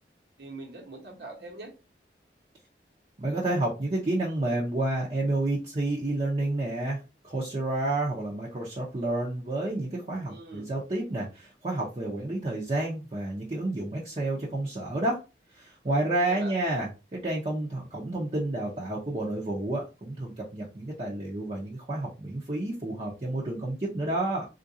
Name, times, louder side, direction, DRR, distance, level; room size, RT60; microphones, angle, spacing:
voice 1, 0.4-1.7 10.3-10.7 16.3-16.6, right 2 dB, 70° right, 1.1 m, -42 dB
voice 2, 3.2-15.2 15.5-24.5, right 2 dB, 35° right, 0.7 m, -30 dB
3.8 x 2.5 x 2.6 m
head